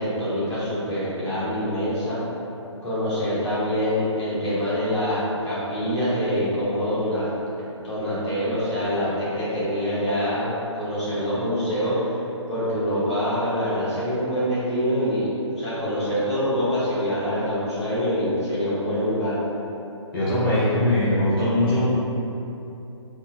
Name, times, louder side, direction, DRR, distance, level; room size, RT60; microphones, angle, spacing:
voice 1, 0.0-2.2 2.8-7.3 7.8-12.2 12.5-19.4, equal, 65° left, -11 dB, 1.4 m, -25 dB
voice 2, 20.1-21.9, left 1 dB, 50° left, -12 dB, 1.4 m, -21 dB
4.5 x 2.7 x 2.4 m, 2.9 s
figure-of-eight pair, 135°, 16 cm